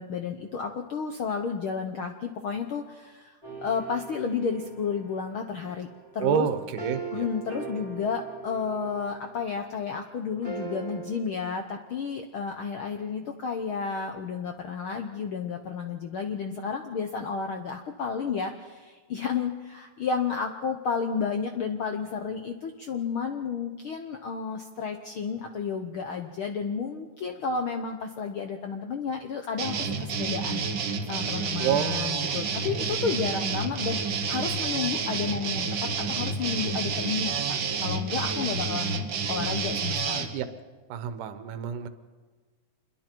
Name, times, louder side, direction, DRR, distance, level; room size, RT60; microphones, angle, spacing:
voice 1, 0.0-5.9 6.1-6.5 7.1-39.0 39.3-40.3, left 5 dB, 75° left, 5 dB, 1.2 m, -32 dB
sound 1, 3.4-9.7 10.4-11.0, right 5 dB, 5° left, 6.5 m, -40 dB
voice 2, 6.2-7.3 31.6-33.1 40.3-40.5 40.9-41.9, right 9 dB, 80° right, 10 dB, 2.5 m, -29 dB
sound 2, 29.6-40.3, right 4 dB, 55° right, 1.4 m, -29 dB
27.5 x 22.0 x 4.5 m, 1.4 s
omnidirectional pair, 3.7 m